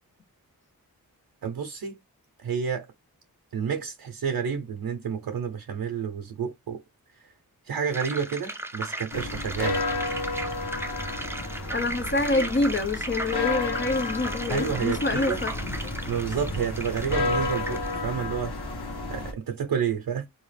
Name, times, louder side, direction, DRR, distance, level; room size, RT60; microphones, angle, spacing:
voice 1, 1.4-2.0 2.4-2.9 3.5-6.8 7.2-7.3 7.6-9.8 14.5-15.4 16.1-18.6 19.1-20.3, right 7 dB, 75° right, 0.7 m, -30 dB
sound 1, 7.9-18.0, right 1 dB, 5° right, 0.6 m, -36 dB
sound 2, 9.1-19.3, left 2 dB, 85° left, 1.4 m, -31 dB
voice 2, 11.7-15.5, left 2 dB, 30° left, 0.8 m, -26 dB
3.9 x 2.7 x 3.2 m
cardioid pair, 55°, 37 cm